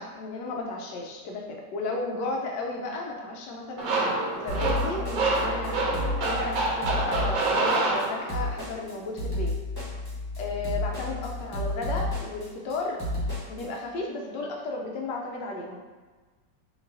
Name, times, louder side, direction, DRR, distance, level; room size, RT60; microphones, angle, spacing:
voice 1, 0.0-9.5 10.4-13.0 13.5-15.8, left 3 dB, 75° left, 0 dB, 1.3 m, -34 dB
sound 1, 3.8-8.6, right 2 dB, 80° right, 1.5 m, -27 dB
sound 2, 4.5-13.6, left 1 dB, 15° left, 1.1 m, -32 dB
6.0 x 2.9 x 2.7 m, 1.3 s
omnidirectional pair, 2.0 m